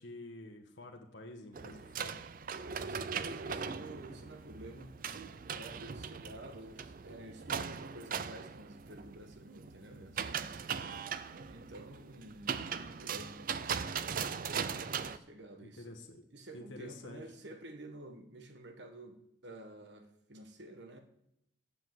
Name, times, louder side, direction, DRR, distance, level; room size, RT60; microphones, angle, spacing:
voice 1, 0.0-2.2 15.6-16.2 16.5-17.2, left 2 dB, 80° left, 2 dB, 1.3 m, -49 dB
sound 1, 1.5-15.2, right 6 dB, 45° right, 0.4 m, -40 dB
voice 2, 2.6-4.9 5.5-10.7 11.5-13.4 14.0-14.3 14.9-16.0 16.3-21.0, right 1 dB, 65° right, 6 dB, 1.3 m, -50 dB
8.3 x 7.4 x 7.8 m, 0.82 s
head